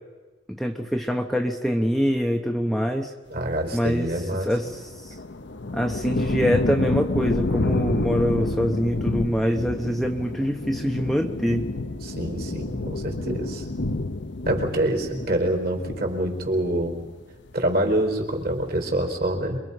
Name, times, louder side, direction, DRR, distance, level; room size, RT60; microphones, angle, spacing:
voice 1, 0.5-3.1 3.7-4.1 4.4-5.2 5.7-11.6, equal, ahead, 2 dB, 1.0 m, -24 dB
voice 2, 3.3-4.5 12.0-13.6 14.4-17.0 17.5-19.6, right 1 dB, 45° right, 3 dB, 4.4 m, -26 dB
sound 1, 4.4-17.2 17.5-18.2, left 2 dB, 65° left, 0.9 m, -29 dB
27.5 x 23.0 x 5.6 m, 1.3 s
head